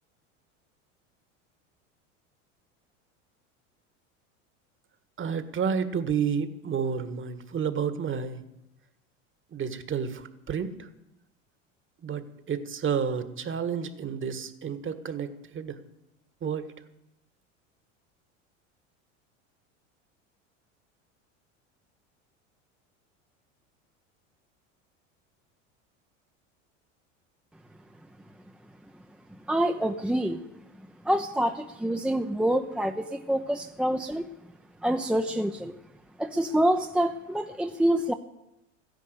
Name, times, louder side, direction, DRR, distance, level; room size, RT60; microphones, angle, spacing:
voice 1, 5.2-8.4 9.5-10.9 12.0-15.8 16.4-16.7, right 7 dB, 30° right, 11 dB, 1.8 m, -30 dB
voice 2, 29.5-30.5 31.0-34.2 34.8-35.8 36.2-38.1, right 1 dB, 5° right, 5 dB, 0.9 m, -26 dB
14.5 x 10.5 x 8.2 m, 0.86 s
hypercardioid pair, 90°, 38 cm